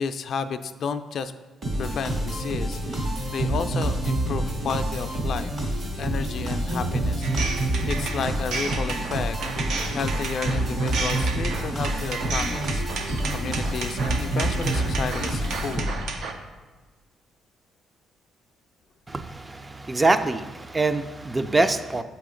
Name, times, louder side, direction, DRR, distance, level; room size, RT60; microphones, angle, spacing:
voice 1, 0.0-1.3 1.8-7.6 7.9-9.4 9.9-15.9, left 6 dB, 60° left, 10 dB, 0.3 m, -32 dB
sound 1, 1.6-16.2, right 1 dB, 50° right, 1.7 m, -27 dB
sound 2, 7.2-16.3, right 4 dB, 75° right, 0.6 m, -33 dB
voice 2, 19.1-22.0, right 2 dB, 20° right, 9 dB, 0.3 m, -24 dB
7.6 x 2.9 x 5.0 m, 1.3 s
cardioid pair, 90°, 0 cm